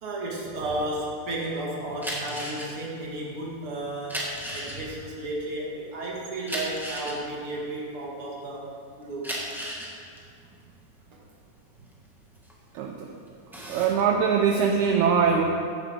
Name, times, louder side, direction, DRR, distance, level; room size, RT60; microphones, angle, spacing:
voice 1, 0.0-9.3 11.1-11.2, right 1 dB, 45° right, -4 dB, 2.8 m, -33 dB
sound 1, 1.9-8.5 9.0-12.9 13.3-14.0, equal, ahead, 1.1 m, -35 dB
voice 2, 12.7-13.1 13.7-15.4, right 6 dB, 75° right, 1 dB, 2.0 m, -22 dB
15.0 x 10.5 x 3.7 m, 2.4 s
omnidirectional pair, 3.6 m